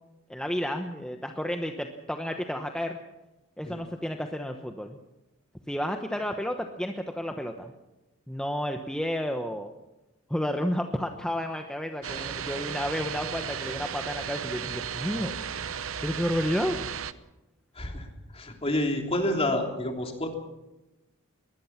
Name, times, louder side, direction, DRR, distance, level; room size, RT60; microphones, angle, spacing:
voice 1, 0.3-3.0 3.6-5.0 5.7-7.7 8.3-9.7 10.3-15.3 16.0-16.8, equal, 5° left, 4 dB, 1.0 m, -31 dB
sound 1, 12.0-17.1, right 7 dB, 70° right, 0.9 m, -35 dB
voice 2, 17.7-20.3, left 1 dB, 30° left, 2 dB, 3.3 m, -29 dB
22.0 x 20.0 x 6.0 m, 0.99 s
head